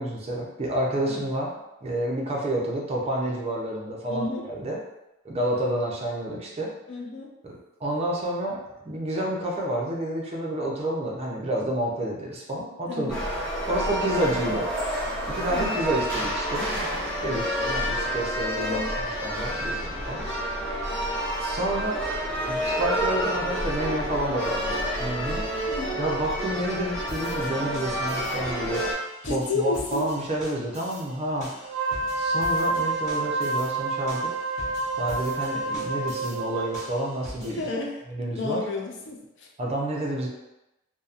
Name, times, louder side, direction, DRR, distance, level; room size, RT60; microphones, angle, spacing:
voice 1, 0.0-1.5 1.8-4.8 5.2-6.7 7.4-13.2 13.7-14.7 15.3-20.2 21.4-22.0 22.4-25.4 26.0-28.8 29.3-31.5 32.2-34.3 35.0-37.6 38.1-38.6 39.6-40.3, right 1 dB, 30° right, -2 dB, 0.5 m, -29 dB
voice 2, 4.1-4.5 6.9-7.3 12.9-13.2 15.5-15.8 18.6-19.0 25.7-26.0 29.2-30.1 37.6-38.1 38.3-39.5, left 3 dB, 60° left, 1 dB, 0.4 m, -31 dB
sound 1, 13.1-28.9, equal, 5° left, 0.7 m, -29 dB
sound 2, 27.1-37.7, equal, 35° left, 0.9 m, -44 dB
Wind instrument woodwind instrument, 31.6-36.9, right 2 dB, 90° right, 0.4 m, -28 dB
2.7 x 2.0 x 2.4 m, 0.93 s
head